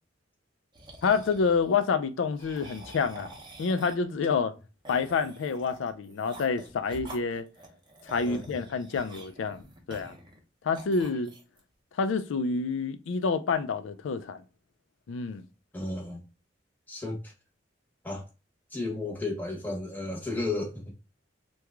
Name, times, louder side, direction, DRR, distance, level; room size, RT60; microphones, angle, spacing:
sound 1, 0.7-1.9 2.4-4.1 4.8-10.4 10.7-11.6, right 1 dB, 25° right, 0.7 m, -48 dB
voice 1, 1.0-3.3 3.6-4.5 4.9-7.5 8.1-10.1 10.6-11.3 12.0-14.4 15.1-15.4, left 5 dB, 90° left, 0.4 m, -28 dB
voice 2, 15.7-16.2 16.9-17.3 18.0-18.2 18.7-20.9, left 2 dB, 10° left, 0.9 m, -33 dB
3.0 x 2.3 x 3.5 m
head